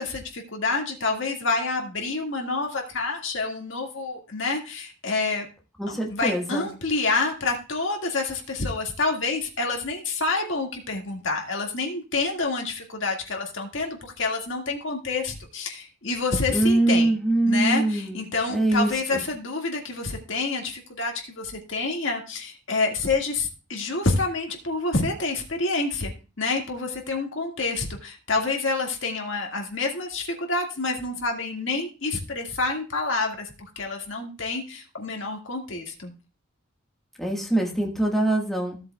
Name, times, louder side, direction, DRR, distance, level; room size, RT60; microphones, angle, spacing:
voice 1, 0.0-5.5 5.9-17.1 17.4-26.1 26.4-36.1, left 3 dB, 65° left, 1 dB, 1.9 m, -28 dB
voice 2, 5.8-6.7 16.5-18.2 18.5-19.2 37.2-38.8, right 1 dB, ahead, -1 dB, 1.5 m, -23 dB
16.0 x 7.8 x 2.3 m, 0.33 s
head